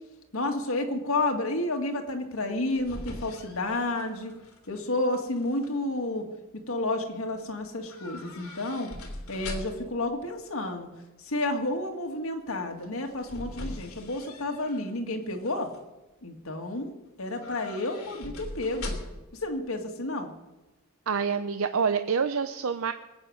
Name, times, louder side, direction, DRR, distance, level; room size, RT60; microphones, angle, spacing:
voice 1, 0.3-4.3 4.7-6.2 6.5-8.9 9.3-10.9 11.2-15.7 16.2-16.9 17.2-19.0 19.4-20.3, left 2 dB, 70° left, 4 dB, 2.1 m, -30 dB
sound 1, 2.4-4.8 5.1-5.7 7.9-10.0 12.8-14.9 15.3-15.8 17.3-19.4 19.6-19.7, left 1 dB, 85° left, 2.8 m, -41 dB
voice 2, 21.1-22.9, right 6 dB, 70° right, 9 dB, 0.6 m, -27 dB
21.5 x 8.9 x 6.5 m, 1.1 s
head